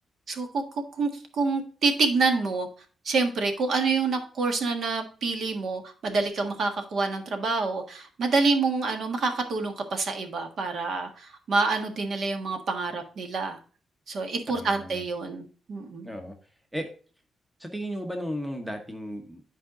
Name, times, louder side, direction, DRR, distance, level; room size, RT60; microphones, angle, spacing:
voice 1, 0.3-2.7 3.0-13.6 14.1-16.1, right 3 dB, 55° right, 5 dB, 1.5 m, -27 dB
voice 2, 14.5-15.0 16.0-16.4 16.7-16.9 17.6-19.4, equal, 5° right, 5 dB, 1.0 m, -35 dB
11.0 x 4.8 x 3.7 m, 0.39 s
wide cardioid pair, 155°, 0 cm